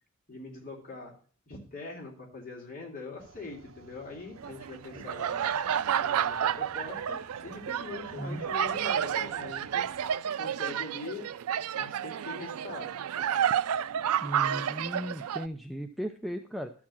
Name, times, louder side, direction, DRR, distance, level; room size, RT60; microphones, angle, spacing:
voice 1, 0.3-1.1 1.5-5.5 6.0-9.8 10.3-11.3 11.7-12.9, left 3 dB, 40° left, -2 dB, 3.3 m, -42 dB
sound 1, 3.2-10.2, right 3 dB, 65° right, 1.0 m, -54 dB
sound 2, 4.4-15.5, right 9 dB, 85° right, 0.4 m, -31 dB
voice 2, 14.2-16.7, equal, ahead, 4 dB, 0.5 m, -36 dB
12.5 x 4.8 x 7.2 m, 0.42 s
head